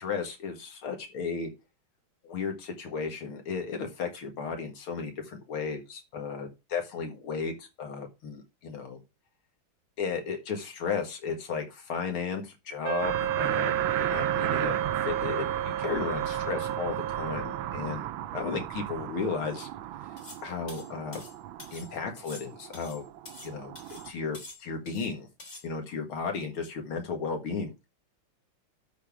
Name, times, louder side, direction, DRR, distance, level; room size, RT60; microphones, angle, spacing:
voice 1, 0.0-1.5 2.2-9.0 10.0-14.8 15.0-15.5 15.8-18.1 18.3-19.7 20.4-21.2 21.7-23.0 23.4-23.7 24.0-25.3 25.6-27.7, left 5 dB, 80° left, 5 dB, 2.6 m, -34 dB
Wind instrument woodwind instrument, 12.8-17.9, right 10 dB, 65° right, 1.0 m, -32 dB
sound 1, 13.0-24.1, right 12 dB, 80° right, 1.4 m, -35 dB
sound 2, 20.2-20.4 20.7-21.9 22.2-23.5 23.8-24.1 24.3-25.1 25.4-25.6, left 2 dB, 35° left, 2.7 m, -47 dB
12.0 x 4.3 x 5.0 m, 0.26 s
omnidirectional pair, 2.3 m